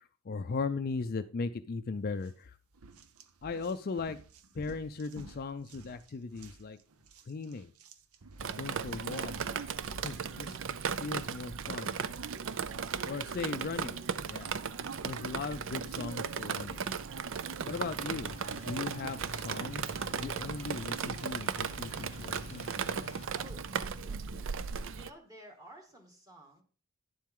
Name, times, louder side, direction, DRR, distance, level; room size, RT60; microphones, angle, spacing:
voice 1, 0.0-2.5 3.4-4.2 4.6-6.8 7.3-7.7 8.6-9.3 10.0-10.6 11.0-11.9 13.0-14.0 14.3-14.5 15.0-16.8 17.6-18.3 18.7-22.7, left 4 dB, 45° left, 10 dB, 0.4 m, -38 dB
sound 1, 2.1-2.3 2.7-10.2, right 3 dB, 85° right, 0.8 m, -53 dB
Drip, 8.4-25.1, right 6 dB, 60° right, 0.5 m, -36 dB
sound 2, 17.7-23.3, left 3 dB, 25° left, 1.0 m, -49 dB
voice 2, 23.3-24.5 24.9-26.6, equal, 15° right, 1 dB, 2.0 m, -53 dB
10.5 x 7.4 x 3.7 m, 0.37 s
head